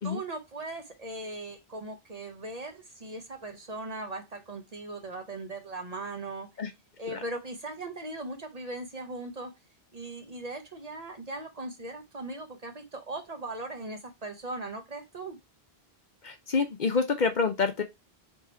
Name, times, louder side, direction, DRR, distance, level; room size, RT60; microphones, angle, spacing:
voice 1, 0.0-6.5 7.0-9.5 9.9-15.4, right 2 dB, 40° right, 0.8 m, -39 dB
voice 2, 16.2-17.8, left 5 dB, 50° left, 0.8 m, -27 dB
3.6 x 2.8 x 4.2 m
omnidirectional pair, 1.1 m